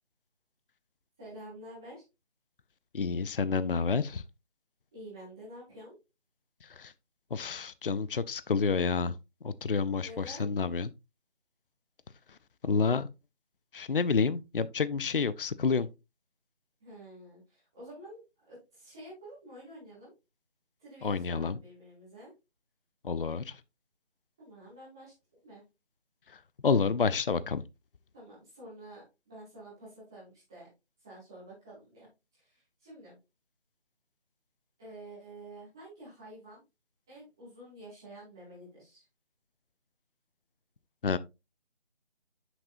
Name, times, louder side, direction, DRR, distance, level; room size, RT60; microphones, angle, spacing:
voice 1, 1.2-2.0 4.9-6.0 10.0-10.5 16.8-20.1 20.8-22.3 24.4-25.6 28.1-30.7 31.0-32.1 32.3-33.2 34.8-36.6 37.1-39.0, right 1 dB, 5° right, 0.9 m, -49 dB
voice 2, 2.9-4.2 6.8-6.9 7.3-9.2 9.4-10.9 12.6-13.1 13.7-15.9 21.0-21.6 23.0-23.6 26.6-27.6 41.0-41.2, left 5 dB, 55° left, 0.5 m, -29 dB
7.9 x 6.2 x 2.5 m
figure-of-eight pair, 160°, 33 cm